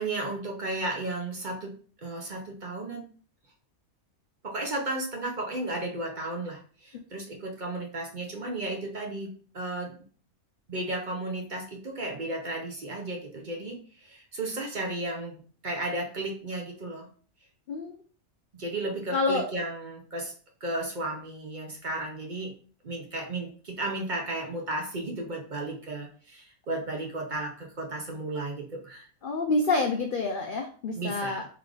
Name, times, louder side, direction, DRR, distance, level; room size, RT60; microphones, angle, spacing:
voice 1, 0.0-1.7 2.0-3.1 4.4-10.0 10.7-17.1 18.5-20.3 20.6-22.5 22.8-29.1 30.9-31.5, right 2 dB, 40° right, 1 dB, 0.8 m, -34 dB
voice 2, 19.1-19.5 29.2-31.4, left 3 dB, 80° left, 4 dB, 0.4 m, -27 dB
3.3 x 3.3 x 3.8 m, 0.42 s
omnidirectional pair, 1.5 m